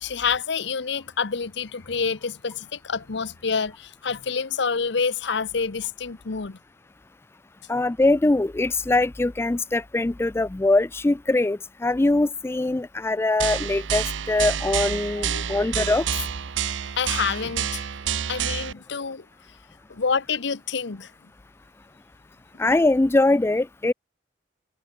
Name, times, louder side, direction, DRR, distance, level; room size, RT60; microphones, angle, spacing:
voice 1, 0.0-6.6 15.2-15.6 17.0-17.8 18.3-19.2 19.9-21.1, left 5 dB, 65° left, 0.9 m, -27 dB
voice 2, 7.7-16.0 22.6-23.9, left 2 dB, 15° left, 0.3 m, -22 dB
sound 1, 13.4-18.7, right 8 dB, 90° right, 0.7 m, -28 dB
head